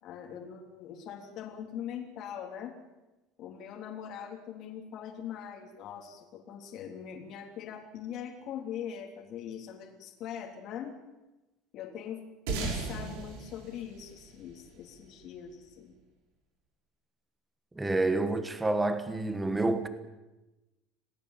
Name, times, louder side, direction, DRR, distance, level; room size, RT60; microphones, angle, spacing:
voice 1, 0.0-2.8 3.4-10.9 11.7-15.9, left 9 dB, 40° left, 3.2 m, -42 dB
sound 1, 12.5-15.2, right 4 dB, 80° right, 6.5 m, -37 dB
voice 2, 17.7-19.9, right 2 dB, 10° right, 1.4 m, -28 dB
27.0 x 18.5 x 7.5 m
cardioid pair, 170°, 0 cm